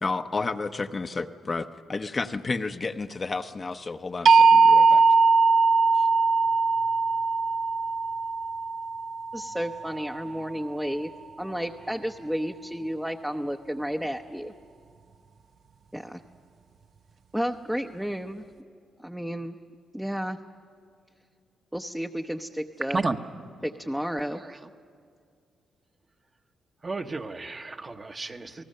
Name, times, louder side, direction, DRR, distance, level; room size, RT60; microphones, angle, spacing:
voice 1, 0.0-5.0 6.0-6.1, left 3 dB, 35° left, 0.8 m, -31 dB
sound 1, 4.3-10.2, right 4 dB, 60° right, 0.6 m, -20 dB
voice 2, 9.3-11.1 11.4-14.5 15.9-16.2 17.3-18.4 19.0-19.6 19.9-20.4 21.7-23.0 23.6-24.5, equal, 5° right, 0.8 m, -32 dB
voice 3, 24.3-24.7 26.8-28.6, right 3 dB, 35° right, 1.1 m, -32 dB
29.5 x 18.5 x 6.7 m
cardioid pair, 75°, 0 cm